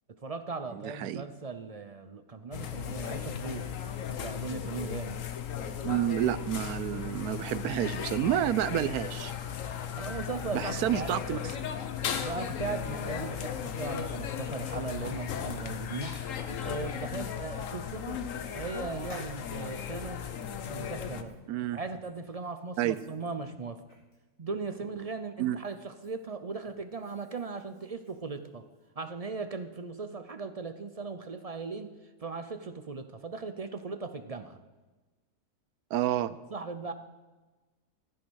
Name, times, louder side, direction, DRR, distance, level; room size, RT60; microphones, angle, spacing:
voice 1, 0.2-3.7 4.1-5.2 9.8-11.1 12.1-18.2 18.5-20.3 20.7-21.4 21.7-23.8 24.4-28.6 29.0-31.9 32.2-34.6 36.5-36.9, right 4 dB, 60° right, 9 dB, 0.3 m, -38 dB
voice 2, 0.7-1.2 5.8-9.3 10.5-11.4 21.5-21.8 22.8-23.0 25.4-25.6 35.9-36.3, right 12 dB, 75° right, 16 dB, 1.1 m, -29 dB
sound 1, 2.5-21.2, left 8 dB, 60° left, 1.2 m, -36 dB
Hands, 16.0-16.2 16.6-16.7 18.0-18.1 19.1-19.4 20.3-25.2 25.6-28.9, equal, 75° left, 6.3 m, -55 dB
15.0 x 10.5 x 6.3 m, 1.2 s
omnidirectional pair, 1.6 m